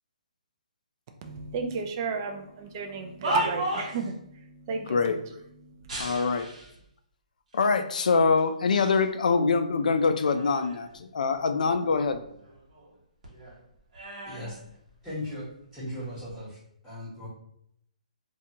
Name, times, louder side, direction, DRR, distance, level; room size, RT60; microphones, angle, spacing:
voice 1, 1.2-5.2 5.6-6.1, right 4 dB, 30° right, 4 dB, 0.3 m, -34 dB
sound 1, 2.8-4.1 5.8-6.8 7.5-7.6 8.4-9.1 9.5-11.0 11.3-13.0 13.2-15.4 16.1-16.4, right 1 dB, 55° right, 1.0 m, -35 dB
voice 2, 6.0-6.5 7.5-12.2, left 4 dB, 75° left, 8 dB, 0.3 m, -24 dB
voice 3, 14.3-14.6 15.0-16.6 16.8-17.3, left 1 dB, 5° left, -16 dB, 1.1 m, -37 dB
2.5 x 2.3 x 2.8 m, 0.72 s
hypercardioid pair, 160°, 4 cm